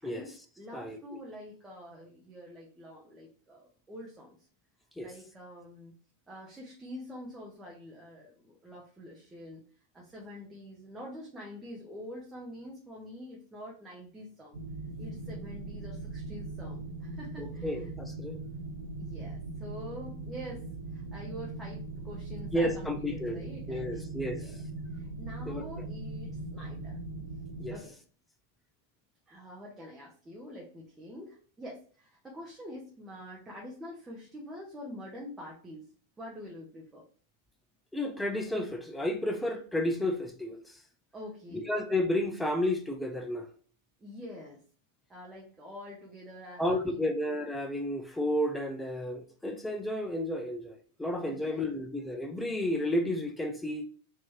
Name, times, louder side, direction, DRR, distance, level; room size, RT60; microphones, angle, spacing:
voice 1, 0.0-4.4 5.0-5.9 6.3-9.6 9.9-14.6 15.0-17.9 19.0-24.6 24.9-27.0 27.7-27.9 29.3-35.9 36.2-37.1 41.1-41.7 44.0-44.6 45.1-47.1 51.3-51.7, left 1 dB, 10° right, 0.9 m, -46 dB
voice 2, 0.7-1.2 5.0-5.1 17.4-18.4 22.5-24.4 25.5-25.6 27.6-27.7 37.9-40.7 41.7-43.5 46.6-53.8, left 1 dB, 5° left, 0.5 m, -32 dB
sound 1, 14.5-27.8, right 3 dB, 65° right, 0.8 m, -40 dB
4.4 x 2.8 x 3.1 m
figure-of-eight pair, 95°, 0 cm